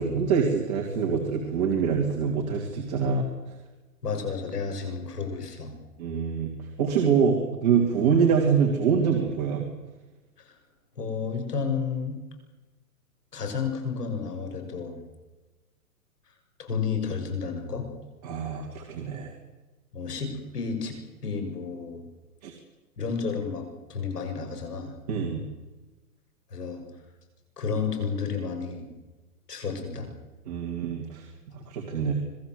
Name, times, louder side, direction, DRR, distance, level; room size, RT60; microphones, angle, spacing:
voice 1, 0.0-3.3 6.0-6.5 6.8-9.6 18.2-19.3 22.4-22.5 25.1-25.4 30.5-31.2 31.5-32.1, right 6 dB, 25° right, -1 dB, 2.5 m, -25 dB
voice 2, 4.0-5.8 10.4-10.6 11.0-12.2 13.3-15.0 16.3-17.9 19.9-22.0 23.0-25.0 26.5-26.8 27.6-28.9 29.5-30.1, left 5 dB, 85° left, 4 dB, 7.1 m, -31 dB
26.0 x 19.5 x 7.9 m, 1.2 s
hypercardioid pair, 180°, 46 cm